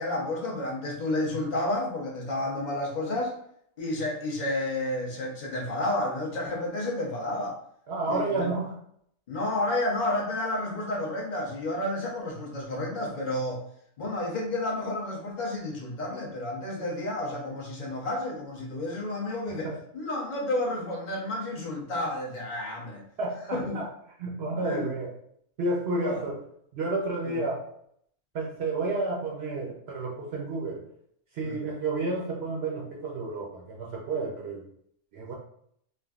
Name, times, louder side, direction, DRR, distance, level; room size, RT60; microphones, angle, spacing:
voice 1, 0.0-3.3 3.8-7.6 8.1-8.5 9.3-13.6 14.0-23.0 23.5-23.8 24.6-25.0 26.0-26.2 27.3-27.4 31.4-31.6, left 1 dB, 45° left, -1 dB, 0.7 m, -31 dB
voice 2, 7.9-8.7 19.6-19.8 23.2-23.9 24.2-25.1 25.6-26.4 26.7-27.6 28.3-30.9 31.3-34.6 35.1-35.3, right 2 dB, 65° right, -2 dB, 0.7 m, -31 dB
3.4 x 2.2 x 2.3 m, 0.68 s
omnidirectional pair, 1.3 m